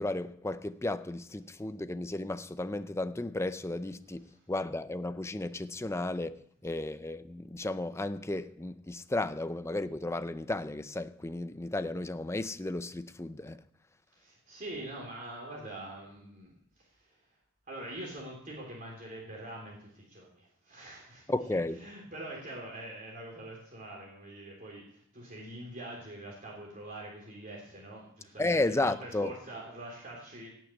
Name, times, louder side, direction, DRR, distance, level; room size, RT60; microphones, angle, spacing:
voice 1, 0.0-13.6 21.3-21.8 28.4-29.3, left 2 dB, 10° left, 0.5 m, -34 dB
voice 2, 14.1-17.2 17.7-21.4 21.7-30.5, right 1 dB, 40° right, 3.3 m, -44 dB
18.0 x 6.2 x 8.4 m
head